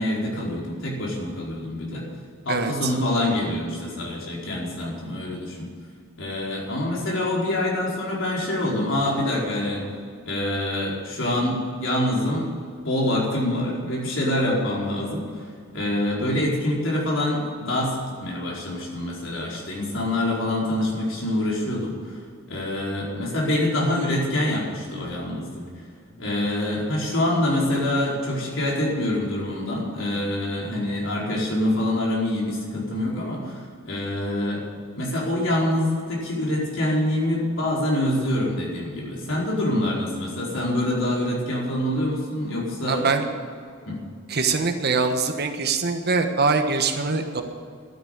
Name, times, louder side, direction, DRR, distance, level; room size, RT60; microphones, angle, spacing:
voice 1, 0.0-2.1 2.4-5.7 6.2-9.9 10.2-12.5 12.8-15.4 15.7-22.2 22.5-25.6 26.2-34.7 35.0-43.1 43.9-44.0, left 1 dB, 70° left, -4 dB, 4.8 m, -25 dB
voice 2, 42.9-43.3 44.3-47.4, right 4 dB, 55° right, 6 dB, 1.3 m, -23 dB
12.5 x 9.7 x 9.4 m, 2.2 s
head